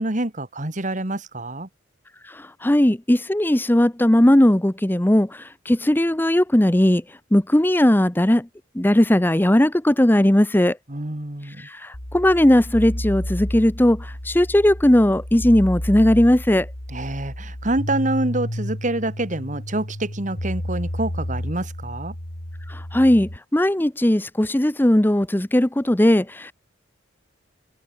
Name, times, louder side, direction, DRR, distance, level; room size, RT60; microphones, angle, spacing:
voice 1, 0.0-1.7 10.9-11.6 16.9-22.1, right 2 dB, 40° right, 2.1 m, -27 dB
voice 2, 2.2-8.5 8.7-10.8 11.4-16.7 22.7-26.5, left 1 dB, 10° left, 0.7 m, -18 dB
sound 1, 11.9-23.4, equal, 55° left, 4.0 m, -31 dB
head